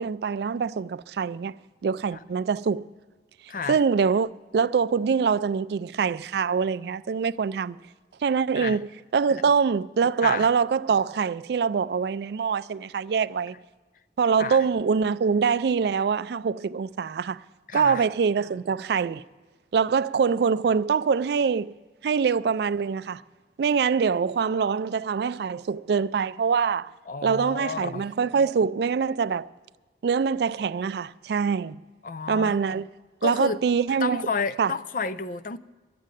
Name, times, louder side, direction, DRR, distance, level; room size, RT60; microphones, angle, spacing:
voice 1, 0.0-1.5 1.8-2.9 3.7-7.8 8.2-8.9 9.1-13.5 14.2-17.4 17.7-19.2 19.7-21.8 22.0-23.2 23.6-26.9 27.2-29.5 30.0-31.8 32.3-32.9 33.2-34.2 34.6-34.7, right 6 dB, 60° right, 0.3 m, -24 dB
voice 2, 3.5-3.8 8.6-8.8 9.3-9.4 10.2-10.5 14.4-14.7 17.7-18.1 27.1-28.1 32.0-32.6 33.2-33.6 34.0-35.6, left 4 dB, 45° left, 0.4 m, -31 dB
12.5 x 7.4 x 9.0 m
head